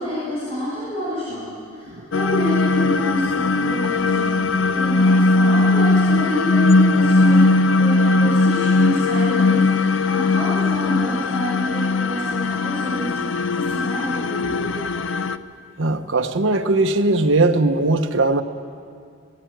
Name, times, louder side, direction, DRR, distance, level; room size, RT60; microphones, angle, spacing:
voice 1, 0.0-1.5 1.7-7.4 7.8-14.7, equal, 30° left, -8 dB, 5.7 m, -28 dB
sound 1, 2.1-15.4, left 3 dB, 80° left, 0.6 m, -19 dB
voice 2, 15.8-18.4, right 2 dB, 80° right, 7 dB, 1.1 m, -19 dB
18.5 x 18.5 x 9.3 m, 2.3 s
head